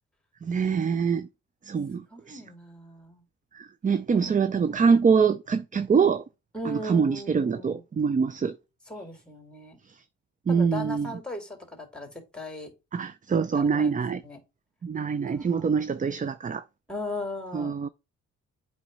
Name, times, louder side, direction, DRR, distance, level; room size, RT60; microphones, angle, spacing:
voice 1, 0.5-1.3 1.7-2.0 2.3-2.4 3.8-6.2 6.9-8.5 10.5-11.1 12.9-14.2 14.8-16.6 17.5-17.9, right 6 dB, 25° right, 0.5 m, -24 dB
voice 2, 2.1-3.2 3.9-4.8 6.5-7.8 8.9-9.8 10.5-12.7 13.5-13.9 14.2-14.4 15.2-15.7 16.9-17.9, left 1 dB, 5° left, 3.0 m, -38 dB
7.9 x 3.1 x 5.4 m
cardioid pair, 90°, 30 cm